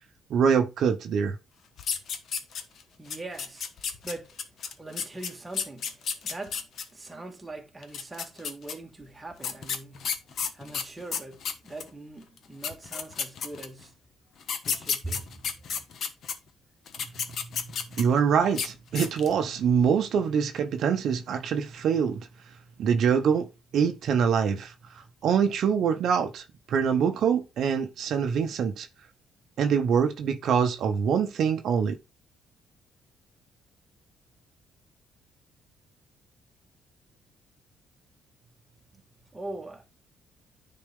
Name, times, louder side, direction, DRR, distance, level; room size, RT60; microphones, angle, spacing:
voice 1, 0.3-1.4 18.0-22.3 22.8-23.5 23.7-24.7 25.2-28.9 29.6-32.0, right 7 dB, 65° right, 0.8 m, -24 dB
sound 1, 1.8-2.8 3.1-6.8 7.8-8.7 9.4-11.9 12.4-12.5 12.6-13.8 14.4-16.3 16.9-18.2 18.5-18.7 18.9-19.4, left 6 dB, 55° left, 1.1 m, -32 dB
voice 2, 3.0-4.4 4.8-6.6 6.9-10.2 10.5-14.0 14.7-15.8 39.3-39.8, right 2 dB, 10° right, 1.8 m, -42 dB
9.8 x 4.3 x 3.6 m
cardioid pair, 120°, 0 cm